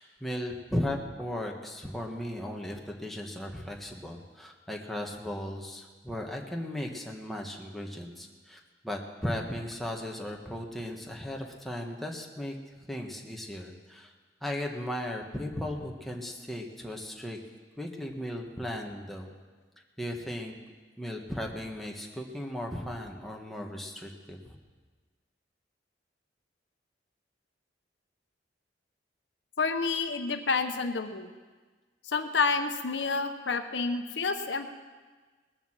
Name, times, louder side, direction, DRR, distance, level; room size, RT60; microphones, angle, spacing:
voice 1, 0.0-12.6 12.9-14.1 14.4-17.4 17.8-19.3 20.0-20.5 21.0-24.6, left 1 dB, ahead, 0 dB, 1.4 m, -36 dB
voice 2, 29.6-31.3 32.1-34.7, left 4 dB, 75° left, 7 dB, 0.9 m, -29 dB
20.5 x 7.1 x 7.5 m, 1.4 s
head